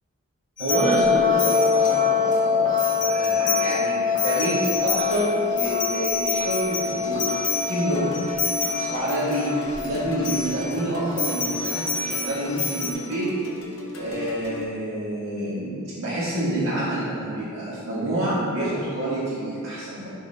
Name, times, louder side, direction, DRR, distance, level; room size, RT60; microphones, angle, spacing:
sound 1, 0.6-2.3 2.7-3.8 4.1-9.9 10.2-10.7 11.2-12.9, left 3 dB, 40° left, 1.8 m, -30 dB
voice 1, 0.6-7.3 7.6-8.1 8.4-13.3 14.0-20.1, right 1 dB, 75° right, -11 dB, 1.9 m, -27 dB
sound 2, 0.7-10.4, left 6 dB, 35° right, 0.8 m, -24 dB
sound 3, 7.0-14.6, left 1 dB, 85° left, 1.1 m, -36 dB
11.5 x 5.9 x 2.9 m, 2.6 s
head